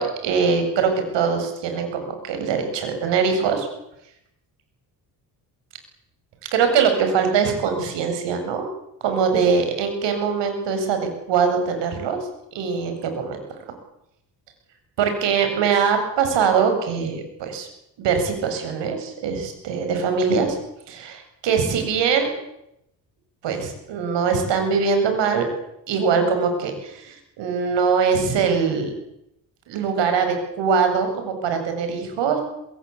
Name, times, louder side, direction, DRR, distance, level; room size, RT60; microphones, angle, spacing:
voice 1, 0.0-3.7 6.5-8.7 9.0-13.4 15.0-17.7 18.0-20.6 20.9-22.3 23.4-25.5 25.9-28.9 29.7-32.4, right 6 dB, 80° right, 6 dB, 7.8 m, -22 dB
24.5 x 21.5 x 8.6 m, 0.81 s
cardioid pair, 80°, 43 cm